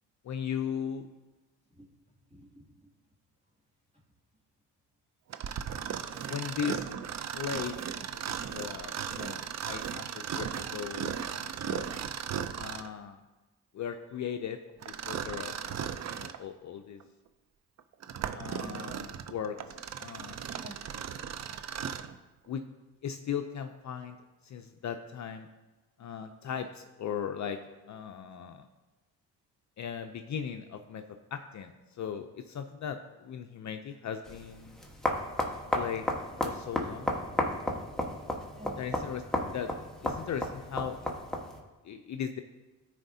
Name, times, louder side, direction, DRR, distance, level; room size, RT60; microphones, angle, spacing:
voice 1, 0.2-1.1 6.3-6.9 7.3-7.8 8.1-11.9 12.6-13.2 13.7-14.6 14.9-17.0 18.3-19.6 20.0-20.4 22.5-22.7 23.0-24.2 24.4-25.5 26.0-27.6 27.9-28.7 29.8-31.0 31.3-34.8 35.7-36.0 36.4-37.1 38.8-39.2 39.5-39.7 40.0-41.2 41.8-42.4, left 8 dB, 45° left, 7 dB, 0.5 m, -38 dB
voice 2, 1.7-2.9 20.5-20.8 38.5-38.8, right 1 dB, 15° right, -2 dB, 2.3 m, -51 dB
Mechanisms, 5.3-13.0 14.8-16.4 17.0-17.1 17.8-22.2, right 8 dB, 40° right, 0.5 m, -37 dB
sound 1, 34.3-41.6, left 1 dB, ahead, 1.3 m, -33 dB
14.0 x 4.9 x 2.7 m, 1.2 s
cardioid pair, 75°, 40 cm